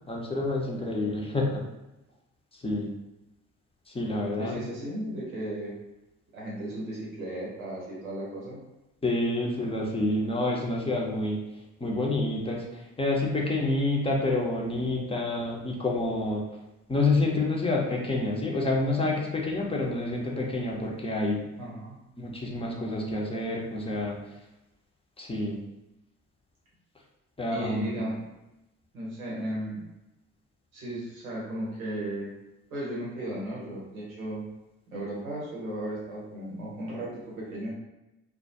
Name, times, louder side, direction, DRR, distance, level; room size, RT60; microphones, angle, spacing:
voice 1, 0.1-1.6 2.5-2.9 3.9-4.6 9.0-11.4 11.8-16.4 16.9-21.4 22.2-24.2 25.2-25.6 27.4-28.0, left 2 dB, 15° left, -2 dB, 0.6 m, -28 dB
voice 2, 4.4-5.7 6.3-8.6 21.6-22.0 27.5-28.2 28.9-29.8 30.7-32.3 32.7-34.5 34.9-37.7, right 1 dB, 90° right, -5 dB, 0.8 m, -35 dB
2.2 x 2.2 x 2.6 m, 0.94 s
hypercardioid pair, 45°, 40 cm